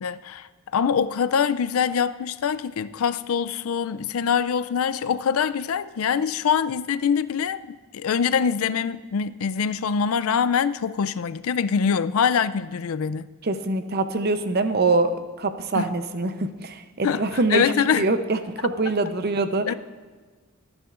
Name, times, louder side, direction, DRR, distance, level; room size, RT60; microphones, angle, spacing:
voice 1, 0.0-13.3 15.7-15.9 17.0-18.1 19.6-19.7, left 7 dB, 80° left, 0.4 m, -24 dB
voice 2, 13.4-19.7, right 3 dB, 45° right, 0.7 m, -24 dB
23.0 x 8.7 x 2.5 m
head